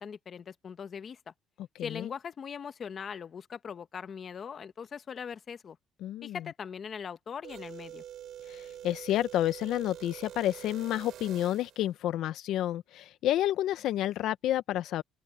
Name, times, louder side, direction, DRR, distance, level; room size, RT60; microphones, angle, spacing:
voice 1, 0.0-1.3 1.8-5.8 6.2-8.0, left 7 dB, 40° left, 1.2 m, -41 dB
voice 2, 6.0-6.4 8.5-15.0, left 13 dB, 70° left, 0.4 m, -30 dB
sound 1, 7.4-11.9, right 11 dB, 60° right, 3.7 m, -46 dB
open air
cardioid pair, 135°, 0 cm